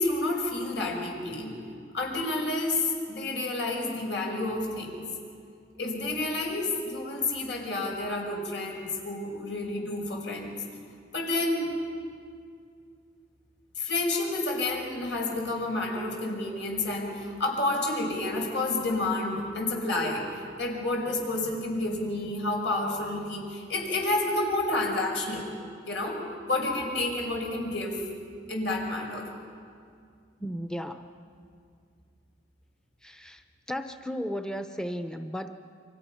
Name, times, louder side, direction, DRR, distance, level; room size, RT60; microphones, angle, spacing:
voice 1, 0.0-1.6 1.9-5.0 5.8-10.5 11.1-11.8 13.8-20.3 20.6-25.5 25.9-26.2 26.5-28.0 28.5-29.3, left 2 dB, 90° left, 0 dB, 5.6 m, -29 dB
voice 2, 30.4-31.0 33.0-33.4 33.7-35.6, equal, 5° left, 7 dB, 0.7 m, -34 dB
29.0 x 24.5 x 5.8 m, 2.2 s
head